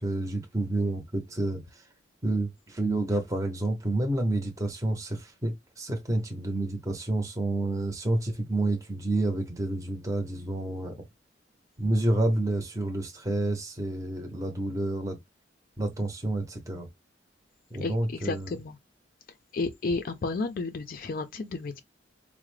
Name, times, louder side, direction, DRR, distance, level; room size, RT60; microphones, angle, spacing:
voice 1, 0.0-1.9 2.2-11.1 11.8-15.2 15.8-16.9 17.7-18.6, right 2 dB, 15° right, 0.6 m, -29 dB
voice 2, 17.8-18.8 19.5-21.8, left 3 dB, 50° left, 0.4 m, -32 dB
4.7 x 2.0 x 3.1 m
head